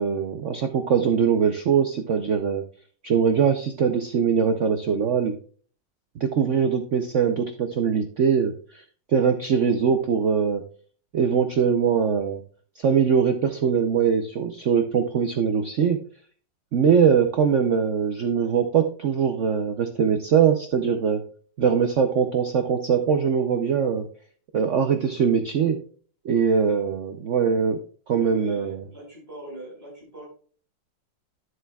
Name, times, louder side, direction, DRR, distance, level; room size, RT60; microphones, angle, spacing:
voice 1, 0.0-2.7 3.0-5.3 6.2-8.8 9.1-10.6 11.1-12.4 12.8-16.0 16.7-21.2 21.6-24.1 24.5-25.8 26.2-27.8 28.1-28.8, right 7 dB, 75° right, 7 dB, 0.6 m, -22 dB
voice 2, 28.1-30.3, right 1 dB, 30° right, -3 dB, 4.8 m, -41 dB
10.0 x 7.8 x 2.3 m, 0.44 s
omnidirectional pair, 2.1 m